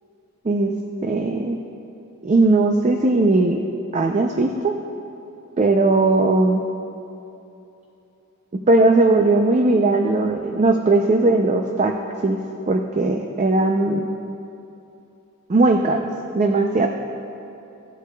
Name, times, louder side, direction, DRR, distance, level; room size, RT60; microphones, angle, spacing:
voice 1, 1.0-1.6 2.2-3.6 3.9-4.8 5.6-6.6 8.7-11.9 12.2-12.4 12.7-14.1 15.5-16.9, right 2 dB, 30° right, 3 dB, 0.4 m, -18 dB
17.5 x 8.0 x 2.3 m, 2.9 s
head